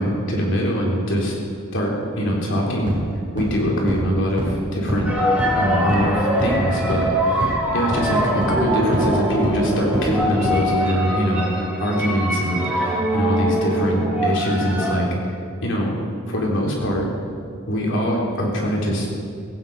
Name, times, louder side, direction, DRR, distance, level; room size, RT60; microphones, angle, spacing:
voice 1, 0.0-1.3 1.7-3.0 3.3-5.1 5.6-16.0 16.3-17.1 17.7-19.1, equal, 65° left, -2 dB, 3.6 m, -23 dB
sound 1, 2.9-3.0 3.4-3.5 3.9-4.0 4.4-4.5 4.9-5.0 5.4-5.5 5.9-6.0 6.4-6.5 6.9-7.0 7.4-7.5 7.9-8.0 8.4-8.5 8.9-9.0 9.4-9.5 9.9-10.0 10.4-10.5, equal, 25° right, 4.7 m, -25 dB
sound 2, 5.1-14.9, equal, 5° right, 3.0 m, -23 dB
16.5 x 16.5 x 4.9 m, 2.5 s
head